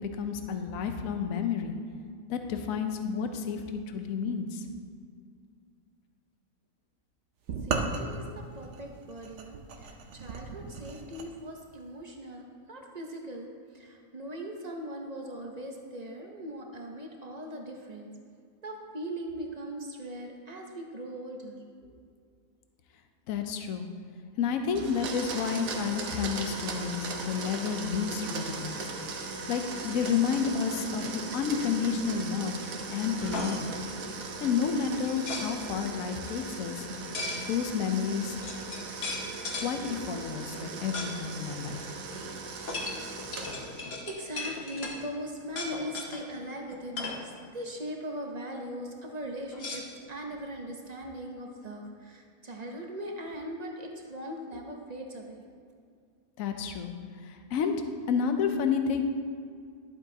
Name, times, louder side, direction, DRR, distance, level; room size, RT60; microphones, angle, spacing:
voice 1, 0.1-1.8 2.3-4.7 23.3-23.9 24.4-28.8 29.5-32.7 32.9-33.8 34.4-36.9 37.5-38.4 39.6-41.9 56.4-56.9 57.2-57.7 58.1-59.0, left 6 dB, 75° left, 6 dB, 1.1 m, -30 dB
sound 1, 7.5-11.3, right 4 dB, 60° right, 1.0 m, -35 dB
voice 2, 7.6-12.4 12.7-18.1 18.6-22.0 43.1-55.4, right 1 dB, 35° right, 1 dB, 0.7 m, -40 dB
Domestic sounds home sounds, 24.7-44.0, right 3 dB, 75° right, 1.3 m, -38 dB
sound 2, 33.2-33.6 35.0-35.5 37.1-37.4 38.1-38.2 38.4-39.7 40.9-41.1 41.4-41.5 42.7-45.0 45.5-46.2 46.7-47.2 49.5-50.4, left 3 dB, 50° left, 1.2 m, -36 dB
11.5 x 7.8 x 2.8 m, 2.2 s
omnidirectional pair, 1.5 m